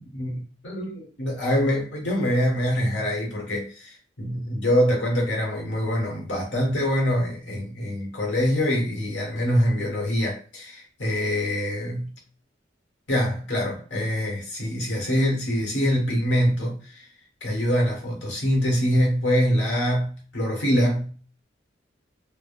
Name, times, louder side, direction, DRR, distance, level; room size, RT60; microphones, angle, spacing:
voice 1, 0.1-12.1 13.1-17.1 17.4-21.1, equal, 70° left, 1.3 m, -24 dB
3.5 x 2.1 x 2.4 m
head